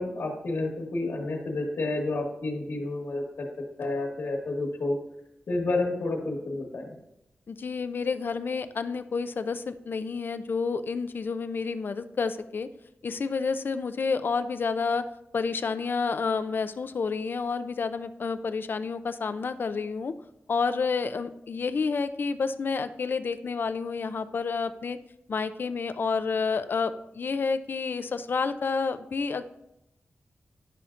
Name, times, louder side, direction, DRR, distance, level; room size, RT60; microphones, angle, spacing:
voice 1, 0.0-3.5 3.8-5.0 5.5-6.9, left 2 dB, 75° left, -3 dB, 1.3 m, -30 dB
voice 2, 7.5-12.7 13.0-15.0 15.3-20.1 20.5-25.0 25.3-29.4, left 5 dB, 55° left, 11 dB, 0.4 m, -29 dB
11.0 x 5.6 x 2.5 m, 0.84 s
wide cardioid pair, 120°, 4 cm